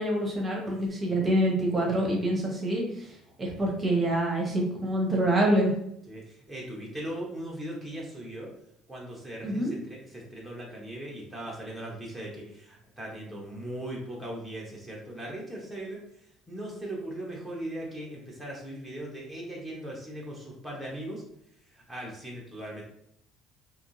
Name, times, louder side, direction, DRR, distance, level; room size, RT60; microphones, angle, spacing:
voice 1, 0.0-3.1 3.4-5.7 9.4-9.7, right 1 dB, 20° right, -1 dB, 0.9 m, -26 dB
voice 2, 6.1-8.5 8.9-16.0 16.5-21.2 21.6-22.8, right 1 dB, 5° left, -4 dB, 0.9 m, -39 dB
3.4 x 2.7 x 2.7 m, 0.73 s
cardioid pair, 120°, 0 cm